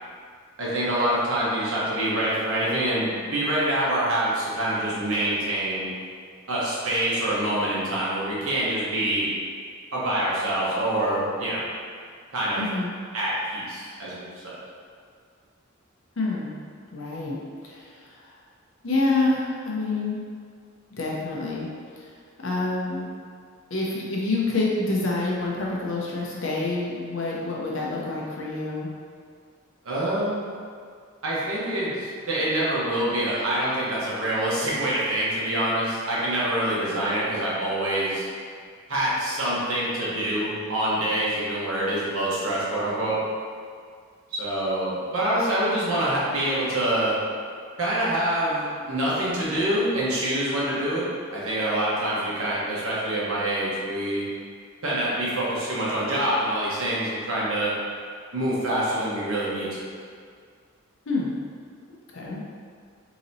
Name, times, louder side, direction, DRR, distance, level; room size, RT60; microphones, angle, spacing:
voice 1, 0.6-5.9 6.5-9.3 9.9-11.6 12.3-12.6 13.1-14.5 29.8-30.4 31.2-38.3 38.9-43.2 44.3-47.1 47.8-54.2 54.8-57.7 58.3-59.9, right 1 dB, 80° right, -7 dB, 1.1 m, -26 dB
voice 2, 12.6-12.9 16.2-16.6 16.9-17.4 17.6-18.3 18.8-20.2 21.0-21.7 22.0-22.1 22.4-23.1 23.7-28.9 61.1-61.3 62.1-62.4, left 2 dB, 65° left, -4 dB, 0.7 m, -27 dB
3.9 x 2.9 x 2.7 m, 2.1 s
head